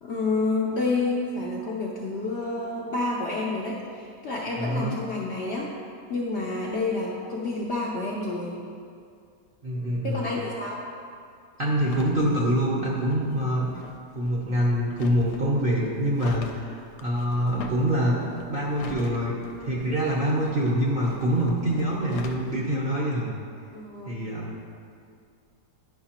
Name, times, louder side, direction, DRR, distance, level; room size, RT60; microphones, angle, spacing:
voice 1, 0.0-5.7 6.1-8.6 10.0-10.9 23.7-24.1, left 3 dB, 60° left, -4 dB, 0.7 m, -29 dB
voice 2, 4.6-5.0 9.6-10.3 11.6-13.7 14.1-19.3 19.6-23.3 24.1-24.5, equal, 45° right, -4 dB, 0.7 m, -25 dB
sound 1, 11.7-22.6, left 4 dB, 80° left, 1.1 m, -43 dB
9.5 x 5.6 x 2.9 m, 2.3 s
omnidirectional pair, 1.8 m